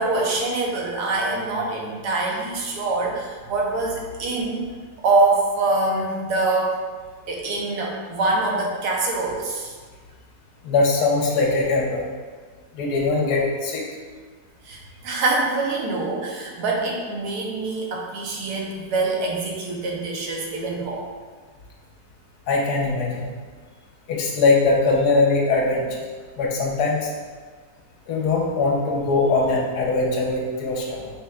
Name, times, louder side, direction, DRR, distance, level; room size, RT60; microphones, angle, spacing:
voice 1, 0.0-4.7 5.0-6.8 7.3-9.7 14.6-21.1, right 3 dB, 85° right, -1 dB, 1.3 m, -24 dB
voice 2, 10.6-12.1 12.7-13.8 22.5-23.3 24.1-25.8 26.4-27.1 28.1-31.1, left 3 dB, 75° left, -1 dB, 1.3 m, -21 dB
5.4 x 3.4 x 2.3 m, 1.5 s
omnidirectional pair, 1.7 m